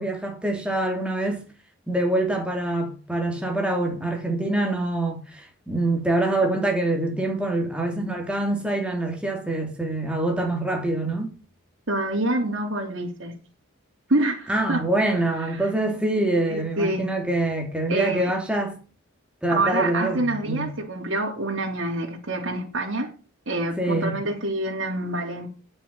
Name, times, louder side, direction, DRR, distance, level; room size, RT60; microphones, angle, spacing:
voice 1, 0.0-1.4 1.9-11.3 14.5-18.8 19.4-20.7 23.8-24.2, right 2 dB, 5° right, 2.9 m, -25 dB
voice 2, 11.9-13.3 14.1-14.8 15.1-15.2 15.6-15.7 16.5-17.1 17.9-18.3 19.5-23.1 23.5-25.5, right 1 dB, 65° right, 3.2 m, -26 dB
9.7 x 7.1 x 8.6 m
head